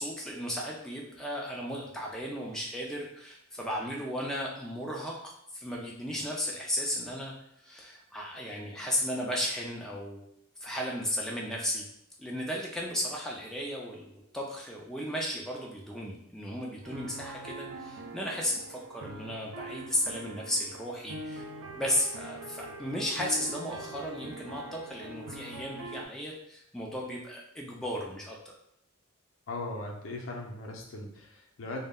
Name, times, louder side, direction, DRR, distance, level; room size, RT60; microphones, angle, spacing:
voice 1, 0.0-7.3 7.6-10.3 10.6-11.9 12.2-21.5 21.8-28.4, equal, 5° left, -3 dB, 0.3 m, -35 dB
sound 1, 16.8-26.1, right 2 dB, 80° right, 0.4 m, -43 dB
voice 2, 29.5-31.8, left 2 dB, 70° left, 1 dB, 0.5 m, -38 dB
2.3 x 2.0 x 3.5 m, 0.72 s
head